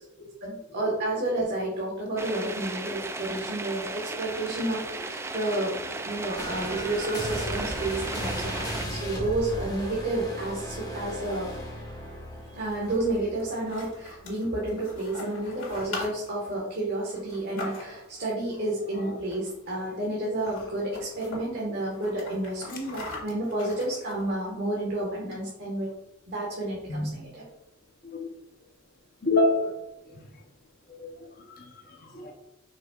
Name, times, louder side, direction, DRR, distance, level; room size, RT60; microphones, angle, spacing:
voice 1, 0.4-5.8 6.0-11.5 12.4-25.9 26.3-27.4, right 1 dB, 55° right, -4 dB, 1.5 m, -30 dB
sound 1, 2.2-8.9, right 3 dB, 10° right, 0.3 m, -35 dB
sound 2, 6.4-14.5 14.9-15.2, equal, 20° left, 1.5 m, -36 dB
sound 3, 12.5-18.2 19.2-19.7 20.0-20.1 20.3-21.4 21.8-24.5, left 3 dB, 65° left, 2.1 m, -42 dB
voice 2, 17.6-17.9 18.9-19.2 26.9-27.1 28.0-28.3 29.2-29.7 30.1-30.3 31.0-32.3, left 2 dB, 45° left, 1 dB, 0.9 m, -29 dB
7.4 x 5.8 x 2.4 m, 0.89 s
head